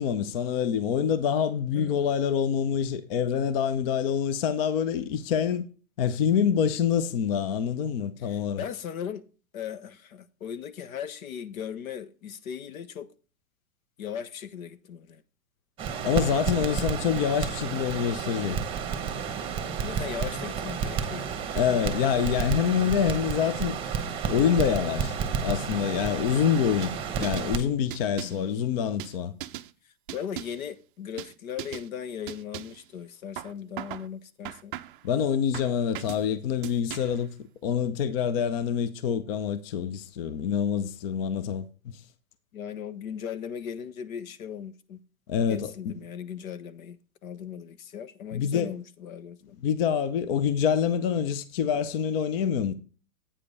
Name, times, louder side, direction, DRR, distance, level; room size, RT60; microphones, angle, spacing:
voice 1, 0.0-5.6 6.0-8.6 16.0-18.6 21.6-23.8 24.3-25.2 25.4-26.9 27.2-29.3 35.0-37.3 37.6-41.6 45.3-45.9 48.3-48.7 49.6-52.7, left 8 dB, 45° left, 0.6 m, -26 dB
voice 2, 1.7-2.1 8.2-9.3 9.5-13.1 14.0-15.2 16.6-16.8 19.8-21.5 28.2-28.5 30.1-34.7 42.5-45.0 45.5-49.6, left 8 dB, 75° left, 1.0 m, -38 dB
Crackle, 15.8-27.6, right 7 dB, 10° right, 1.1 m, -31 dB
sound 1, 26.8-27.5 27.9-28.5 29.0-29.7 30.1-30.7 31.2-31.3 31.6-31.9 32.3-32.8 33.4-34.1 34.4-35.1 35.5-36.2 36.6-37.2, right 13 dB, 40° right, 0.4 m, -39 dB
8.8 x 5.0 x 5.3 m
hypercardioid pair, 150°, 42 cm